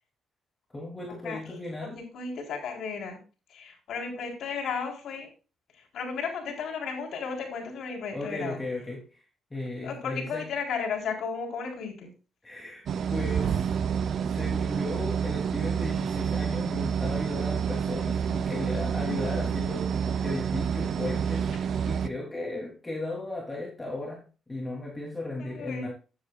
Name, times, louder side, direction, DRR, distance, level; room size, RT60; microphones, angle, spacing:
voice 1, 0.7-2.0 8.1-9.2 9.5-10.5 12.4-13.5 14.4-25.9, left 2 dB, 15° left, -2 dB, 3.1 m, -36 dB
voice 2, 1.8-3.2 3.5-5.3 5.7-8.6 9.8-12.1 18.8-19.4 25.4-25.9, left 5 dB, 70° left, 1 dB, 3.9 m, -34 dB
sound 1, 12.9-22.1, right 7 dB, 60° right, 0.6 m, -28 dB
13.0 x 9.7 x 2.4 m, 0.34 s
cardioid pair, 90°, 0 cm